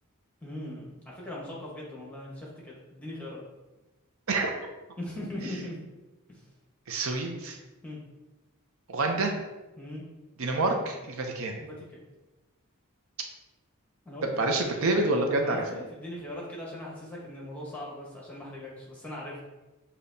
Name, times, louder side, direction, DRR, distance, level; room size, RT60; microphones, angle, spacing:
voice 1, 0.4-3.4 5.0-5.8 6.3-6.4 7.8-8.0 9.8-10.0 11.6-12.0 14.0-14.7 15.4-19.4, left 1 dB, 5° left, -5 dB, 1.1 m, -40 dB
voice 2, 6.9-7.6 8.9-9.3 10.4-11.6 14.4-15.6, right 2 dB, 70° right, 3 dB, 0.6 m, -27 dB
6.8 x 2.8 x 2.7 m, 1.1 s
head